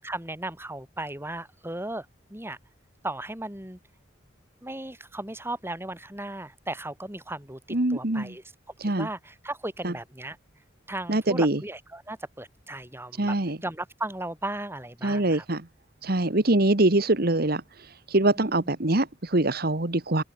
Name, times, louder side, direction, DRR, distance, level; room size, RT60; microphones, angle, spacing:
voice 1, 0.0-2.6 3.0-3.8 4.6-8.4 8.8-10.4 10.9-13.4 13.6-15.4 18.4-18.7, right 1 dB, 15° right, 7.4 m, -36 dB
voice 2, 7.7-8.3 8.8-9.1 9.8-9.9 11.1-11.6 13.2-13.6 15.0-15.7 16.0-20.2, right 2 dB, 55° right, 1.8 m, -24 dB
open air
head